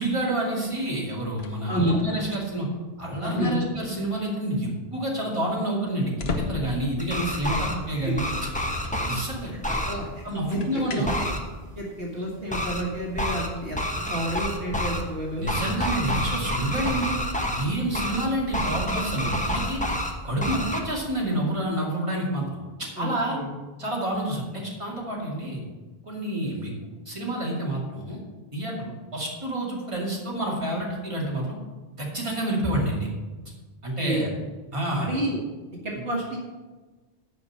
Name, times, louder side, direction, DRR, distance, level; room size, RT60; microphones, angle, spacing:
voice 1, 0.0-2.7 3.0-8.3 9.0-9.5 10.2-11.1 15.4-17.1 17.5-19.8 20.2-23.4 23.8-25.6 26.0-26.7 27.1-28.2 28.5-31.5 32.0-33.1 33.8-34.3 34.7-35.1 36.0-36.1, right 1 dB, 30° right, -4 dB, 2.4 m, -28 dB
sound 1, 1.4-2.8 3.5-3.9 5.9-13.1, left 3 dB, 80° left, 1.2 m, -39 dB
voice 2, 1.7-2.0 3.2-3.6 7.9-8.2 9.0-9.1 9.7-10.2 10.5-11.3 11.8-13.8 14.1-15.5 23.0-23.5 34.0-34.3 35.0-35.4 35.8-36.4, equal, 70° right, -2 dB, 1.9 m, -29 dB
sound 2, 7.0-7.7 8.2-9.2 9.6-9.9 11.1-11.4 12.5-12.8 13.2-13.5 13.8-15.0 15.5-17.6 17.9-18.2 18.5-20.1 20.4-20.8, equal, 10° left, 1.1 m, -28 dB
9.4 x 5.5 x 7.5 m, 1.3 s
omnidirectional pair, 1.0 m